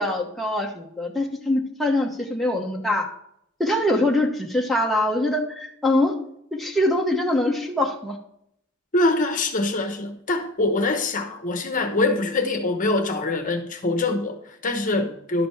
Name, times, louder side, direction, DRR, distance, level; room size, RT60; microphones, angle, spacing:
voice 1, 0.0-3.1 3.6-6.1 6.5-8.2, left 1 dB, ahead, 1.0 m, -23 dB
voice 2, 8.9-15.5, left 2 dB, 40° left, 1.0 m, -24 dB
11.5 x 5.2 x 5.7 m
head